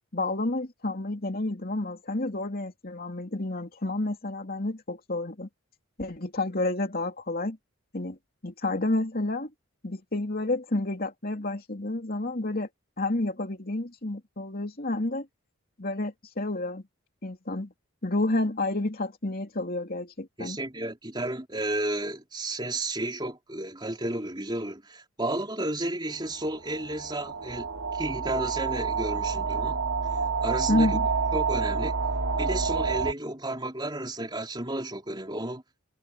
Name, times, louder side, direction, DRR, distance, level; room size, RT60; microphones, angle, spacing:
voice 1, 0.1-5.5 6.0-7.6 7.9-8.2 8.4-9.5 9.8-12.7 13.0-15.3 15.8-16.8 17.2-17.7 18.0-20.6 30.7-31.1, left 2 dB, 45° left, 2.8 m, -30 dB
voice 2, 20.4-27.7 27.9-29.8 30.4-31.0 31.3-32.0 32.4-35.6, right 1 dB, 20° right, 4.0 m, -32 dB
sound 1, 26.4-33.1, right 5 dB, 70° right, 2.7 m, -28 dB
head